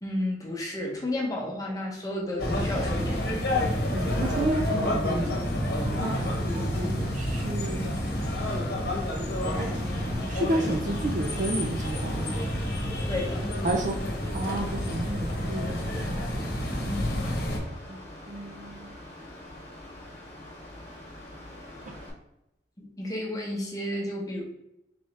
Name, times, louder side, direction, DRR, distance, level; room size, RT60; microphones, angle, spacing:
voice 1, 0.0-3.3 13.1-13.4 16.8-17.1 22.8-24.4, left 1 dB, 20° left, -1 dB, 0.9 m, -32 dB
sound 1, 2.4-17.6, left 1 dB, 55° left, 1.1 m, -29 dB
voice 2, 3.9-5.4 6.0-8.0 9.5-12.5 13.6-14.0 14.3-16.1 17.9-18.9, right 1 dB, 40° right, 2 dB, 0.5 m, -32 dB
Mechanical fan, 8.0-22.1, left 1 dB, 35° left, 1.3 m, -45 dB
4.0 x 3.4 x 3.2 m, 0.85 s
head